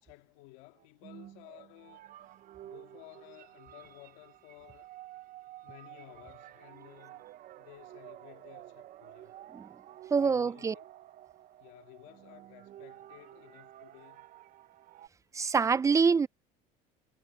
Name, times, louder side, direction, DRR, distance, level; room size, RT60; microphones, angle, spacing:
voice 1, 0.0-2.0 2.6-4.9 5.6-7.2 7.6-9.4 10.2-10.8 11.6-14.3, left 22 dB, 80° left, 2.3 m, -55 dB
sound 1, 0.8-15.1, right 13 dB, 50° right, 0.8 m, -51 dB
voice 2, 10.1-10.7 15.3-16.3, right 5 dB, 15° right, 0.5 m, -25 dB
supercardioid pair, 100°, 18 cm